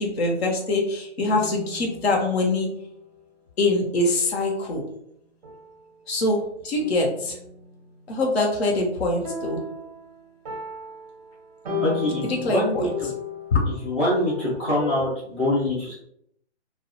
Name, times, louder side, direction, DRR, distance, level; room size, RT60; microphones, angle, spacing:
voice 1, 0.0-2.7 3.6-4.8 6.1-7.4 8.1-9.6 12.2-12.9 13.5-13.6, left 2 dB, 65° left, 0 dB, 0.7 m, -24 dB
sound 1, 1.3-3.1 4.0-4.3 5.4-6.2 6.8-8.0 9.2-15.0, left 3 dB, 35° right, 0.5 m, -35 dB
voice 2, 11.8-12.9 13.8-15.9, left 1 dB, 10° left, -11 dB, 0.4 m, -24 dB
2.1 x 2.0 x 2.9 m, 0.72 s
hypercardioid pair, 160°, 34 cm